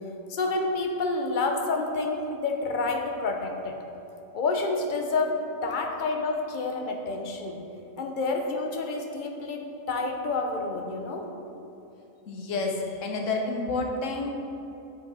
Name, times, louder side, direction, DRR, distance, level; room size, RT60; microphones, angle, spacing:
voice 1, 0.3-3.8 4.3-7.6 8.0-11.3, left 3 dB, 50° left, 3 dB, 0.7 m, -29 dB
voice 2, 12.3-14.3, left 3 dB, 70° left, 1 dB, 1.2 m, -29 dB
7.4 x 4.9 x 4.1 m, 2.9 s
omnidirectional pair, 1.4 m